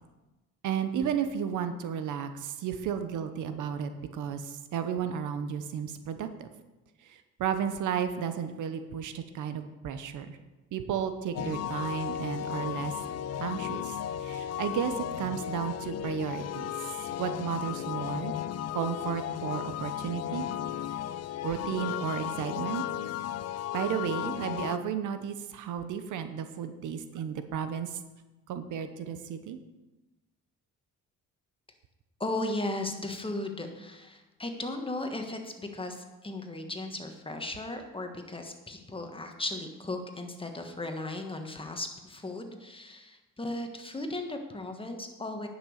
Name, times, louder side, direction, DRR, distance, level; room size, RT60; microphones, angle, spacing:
voice 1, 0.6-6.5 7.0-10.4 10.7-12.9 13.4-16.9 17.2-18.3 18.7-20.5 21.4-22.8 23.7-28.0 28.5-29.6, right 8 dB, 80° right, 9 dB, 0.9 m, -33 dB
sound 1, 11.3-24.8, left 11 dB, 55° left, 0.5 m, -35 dB
voice 2, 32.2-45.5, left 2 dB, 15° left, 5 dB, 1.5 m, -36 dB
10.0 x 6.2 x 6.5 m, 1.1 s
cardioid pair, 90°, 30 cm